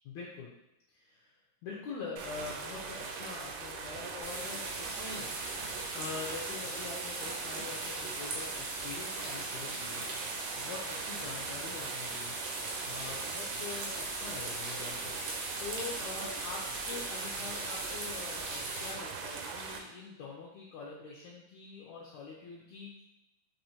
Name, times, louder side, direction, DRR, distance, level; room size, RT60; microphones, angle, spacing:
voice 1, 0.0-0.5 0.9-1.3 1.6-5.3 5.9-12.4 12.8-23.0, left 4 dB, 75° left, -5 dB, 1.8 m, -44 dB
sound 1, 2.2-19.8, right 4 dB, 85° right, 2.2 m, -41 dB
sound 2, 4.2-18.9, right 2 dB, 70° right, 1.6 m, -40 dB
5.5 x 3.1 x 2.9 m, 0.89 s
omnidirectional pair, 3.7 m